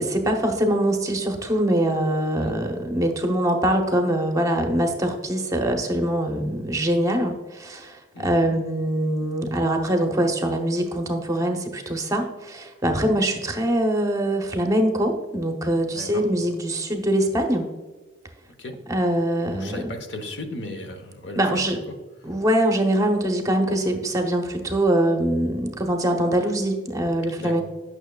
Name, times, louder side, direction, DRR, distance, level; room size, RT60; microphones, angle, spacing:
voice 1, 0.0-17.7 18.9-19.9 21.4-21.8 22.2-27.6, right 1 dB, 15° right, 3 dB, 0.7 m, -23 dB
voice 2, 15.9-16.3 18.6-18.7 19.5-21.9 27.4-27.6, left 1 dB, 70° left, 5 dB, 0.9 m, -36 dB
9.0 x 6.1 x 2.3 m, 1.2 s
head